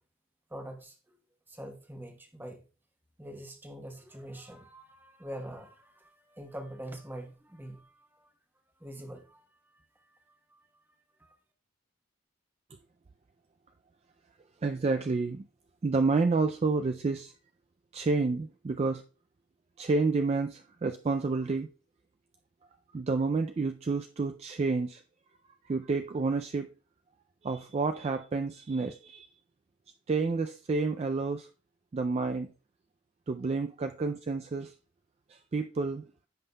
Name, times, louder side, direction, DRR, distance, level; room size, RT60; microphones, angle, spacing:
voice 1, 0.5-1.2 1.5-2.7 3.2-8.3 8.8-9.5 9.7-10.6 11.2-11.3, right 1 dB, 10° right, 4 dB, 1.0 m, -45 dB
voice 2, 14.6-15.5 15.8-17.3 17.9-19.0 19.8-21.7 22.9-25.0 25.6-26.7 27.4-29.3 30.1-31.5 31.9-32.5 33.3-34.7 35.3-36.0, right 3 dB, 30° right, 7 dB, 0.3 m, -29 dB
15.0 x 5.5 x 2.2 m, 0.36 s
head